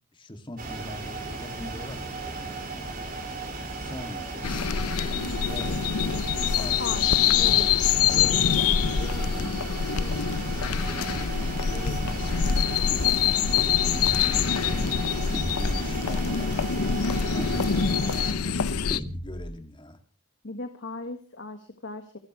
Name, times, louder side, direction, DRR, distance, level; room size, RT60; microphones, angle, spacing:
voice 1, 0.1-3.5 3.8-4.7 5.4-6.2 6.5-7.0 7.4-8.4 8.9-9.7 9.9-11.3 11.6-13.2 13.5-14.0 14.3-15.0 15.6-20.0, left 1 dB, 20° left, 6 dB, 2.4 m, -42 dB
sound 1, 0.6-18.3, right 3 dB, 40° right, 5.1 m, -36 dB
sound 2, 4.4-19.0, left 7 dB, 85° left, 0.7 m, -25 dB
voice 2, 6.8-8.8 20.4-22.2, left 3 dB, 55° left, 7 dB, 1.7 m, -39 dB
sound 3, 14.0-14.5 15.3-15.9 17.4-17.9 18.9-19.6, equal, 5° right, 2.7 m, -34 dB
28.5 x 11.5 x 3.2 m, 0.37 s
head